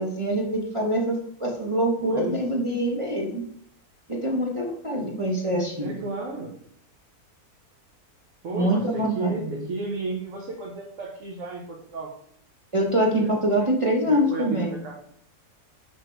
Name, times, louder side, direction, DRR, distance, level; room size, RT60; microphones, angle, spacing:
voice 1, 0.0-3.5 4.1-5.9 8.5-9.7 12.7-14.7, right 1 dB, 25° right, -1 dB, 0.8 m, -25 dB
voice 2, 2.0-2.3 5.8-6.5 8.4-12.1 12.9-13.3 13.6-13.7 14.0-15.0, right 3 dB, 55° right, -2 dB, 1.4 m, -33 dB
6.1 x 4.8 x 4.6 m, 0.64 s
omnidirectional pair, 1.6 m